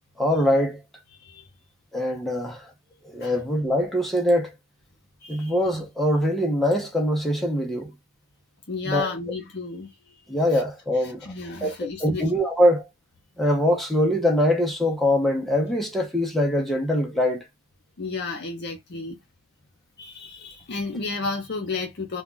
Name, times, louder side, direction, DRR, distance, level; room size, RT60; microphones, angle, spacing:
voice 1, 0.2-0.8 1.9-2.7 3.0-4.5 5.3-7.9 8.8-9.1 10.3-11.3 11.6-12.8 13.4-17.5, equal, ahead, 0.5 m, -23 dB
voice 2, 5.2-5.6 8.7-9.9 10.5-10.6 11.0-12.3 18.0-19.2 20.0-22.2, left 3 dB, 50° left, 0.6 m, -32 dB
2.2 x 2.2 x 3.8 m
head